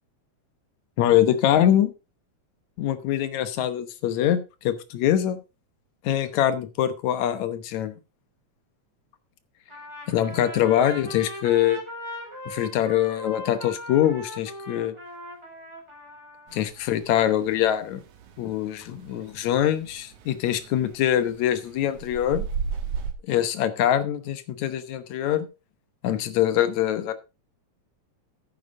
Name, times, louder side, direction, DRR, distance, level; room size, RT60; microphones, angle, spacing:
voice 1, 1.0-1.9 2.8-5.4 6.0-7.9 10.1-11.8 12.5-14.9 16.5-18.0 18.4-22.5 23.3-25.5 26.0-27.1, left 11 dB, 75° left, 12 dB, 2.3 m, -23 dB
Trumpet, 9.7-16.6, equal, 10° right, 3.1 m, -39 dB
sound 1, 16.5-18.5 18.8-23.1, right 6 dB, 75° right, 2.7 m, -33 dB
10.5 x 9.8 x 3.7 m, 0.29 s
omnidirectional pair, 3.4 m